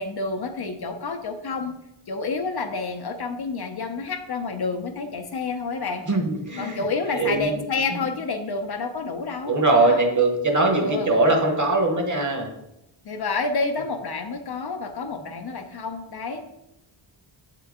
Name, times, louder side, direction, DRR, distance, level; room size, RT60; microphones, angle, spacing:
voice 1, 0.0-1.7 2.1-6.1 6.6-9.5 9.8-10.0 10.7-11.1 13.0-16.4, left 3 dB, 55° left, 5 dB, 0.7 m, -29 dB
voice 2, 6.1-6.8 7.1-7.5 9.5-12.5, right 2 dB, 40° right, 3 dB, 1.0 m, -21 dB
7.9 x 3.8 x 3.6 m, 0.86 s
wide cardioid pair, 130°, 47 cm